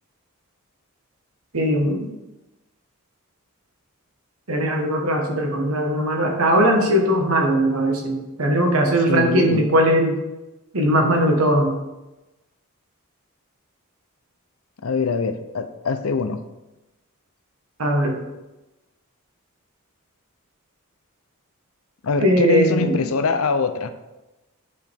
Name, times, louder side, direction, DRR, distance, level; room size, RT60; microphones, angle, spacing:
voice 1, 1.5-2.1 4.5-10.2 10.7-11.7 17.8-18.1 22.2-23.0, right 1 dB, 85° right, 2 dB, 1.4 m, -19 dB
voice 2, 9.1-9.6 14.8-16.4 22.0-23.9, left 4 dB, 75° left, 10 dB, 0.6 m, -23 dB
10.0 x 4.9 x 3.5 m, 1.0 s
head